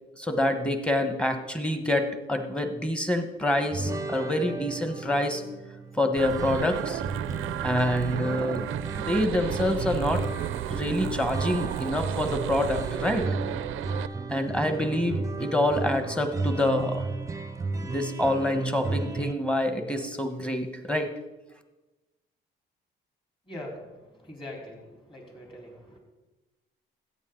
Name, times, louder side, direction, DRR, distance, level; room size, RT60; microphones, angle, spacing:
voice 1, 0.2-5.4 6.0-7.0 7.6-8.7 9.0-10.2 10.7-13.3 14.3-17.1 17.8-21.1, left 1 dB, 5° left, 7 dB, 1.2 m, -27 dB
sound 1, 3.7-19.3, right 3 dB, 15° right, 0.6 m, -34 dB
sound 2, 6.2-14.1, right 12 dB, 85° right, 0.5 m, -33 dB
voice 2, 24.2-24.8 25.1-26.0, left 1 dB, 25° left, -1 dB, 4.1 m, -41 dB
13.5 x 9.0 x 3.9 m, 1.1 s
cardioid pair, 90°, 20 cm